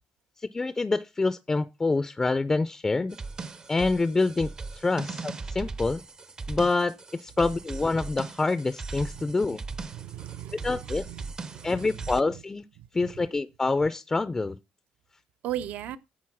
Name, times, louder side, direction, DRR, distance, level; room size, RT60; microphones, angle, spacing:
voice 1, 0.5-3.2 3.7-6.0 6.5-9.6 10.6-11.0 11.6-12.6 12.9-14.6, left 3 dB, 20° left, 0.4 m, -26 dB
sound 1, 3.1-12.2, right 4 dB, 25° right, 0.6 m, -39 dB
voice 2, 9.9-11.7 15.4-16.0, right 12 dB, 70° right, 0.7 m, -37 dB
9.5 x 3.8 x 6.0 m
cardioid pair, 110°, 3 cm